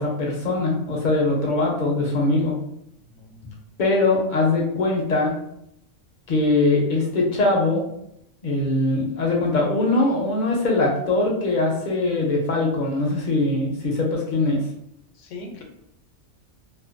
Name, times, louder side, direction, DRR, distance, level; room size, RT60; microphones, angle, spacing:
voice 1, 0.0-2.6 3.8-5.3 6.3-7.8 8.4-14.6, left 2 dB, 55° left, -2 dB, 0.5 m, -21 dB
voice 2, 3.0-3.4 15.1-15.6, left 2 dB, 80° left, 2 dB, 0.9 m, -40 dB
2.5 x 2.1 x 2.5 m, 0.78 s
omnidirectional pair, 1.3 m